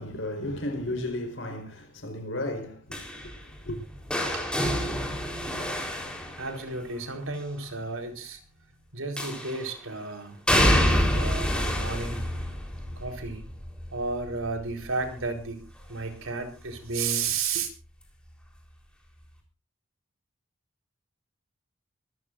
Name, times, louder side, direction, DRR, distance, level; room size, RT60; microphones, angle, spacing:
voice 1, 0.0-3.8, left 1 dB, 60° left, 4.5 m, -34 dB
sound 1, 2.9-7.0 9.2-9.8 10.5-16.3 16.6-17.0 18.3-18.4, equal, 5° left, 3.9 m, -28 dB
voice 2, 4.3-4.8 5.8-6.0 6.3-8.4 8.9-10.4 10.7-12.3 13.0-13.5 13.9-17.7, right 4 dB, 80° right, 4.2 m, -33 dB
24.5 x 14.0 x 2.6 m
head